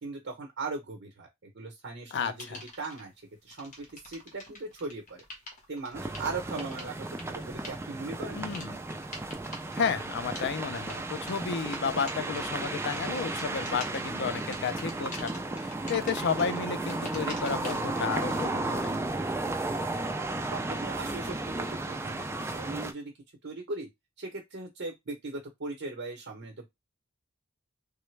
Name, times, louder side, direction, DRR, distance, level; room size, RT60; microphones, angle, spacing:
voice 1, 0.0-2.5 2.8-3.1 3.4-5.2 5.7-8.4 19.9-20.1 20.5-23.1 23.4-23.9 24.2-26.7, right 3 dB, 60° right, 0.8 m, -39 dB
voice 2, 2.1-2.6 8.3-8.8 9.8-15.3 15.6-18.9, left 6 dB, 60° left, 0.4 m, -32 dB
sound 1, 2.4-3.0 3.5-18.0, left 2 dB, 40° left, 1.2 m, -46 dB
sound 2, 5.9-22.9, right 2 dB, 15° right, 0.4 m, -34 dB
3.3 x 2.0 x 3.2 m
head